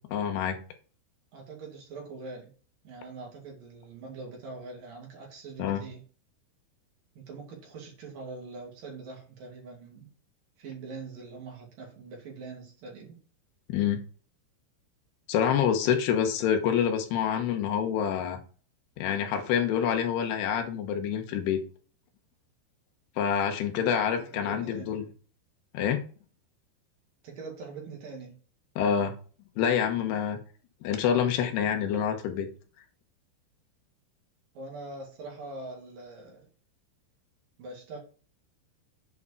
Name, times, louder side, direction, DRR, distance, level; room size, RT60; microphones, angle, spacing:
voice 1, 0.1-0.6 5.6-5.8 13.7-14.0 15.3-18.4 19.0-21.6 23.2-25.1 25.7-26.0 28.8-29.1 29.6-30.4 30.8-32.5, left 8 dB, 70° left, 5 dB, 2.9 m, -27 dB
voice 2, 1.3-2.5 2.8-6.0 7.2-10.1 10.6-13.2 24.0-25.0 27.2-28.3 34.6-36.5 37.6-38.0, right 3 dB, 50° right, -1 dB, 3.7 m, -43 dB
8.3 x 5.0 x 4.9 m, 0.38 s
omnidirectional pair, 5.6 m